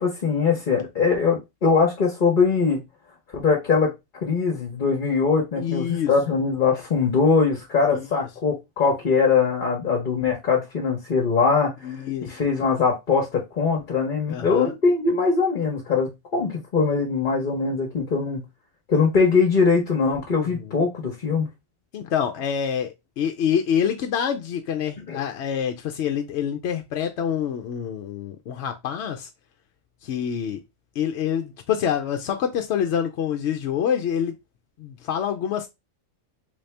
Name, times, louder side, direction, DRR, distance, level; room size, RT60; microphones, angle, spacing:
voice 1, 0.0-2.8 3.3-3.9 4.2-11.9 12.2-18.4 18.9-21.5 25.1-25.2, left 5 dB, 45° left, 1.0 m, -22 dB
voice 2, 5.6-6.1 7.9-8.1 11.8-12.5 14.3-14.7 20.4-20.8 21.9-29.3 30.0-30.6 31.0-34.4 34.8-35.7, left 8 dB, 65° left, 0.8 m, -26 dB
3.5 x 2.7 x 3.2 m
omnidirectional pair, 1.3 m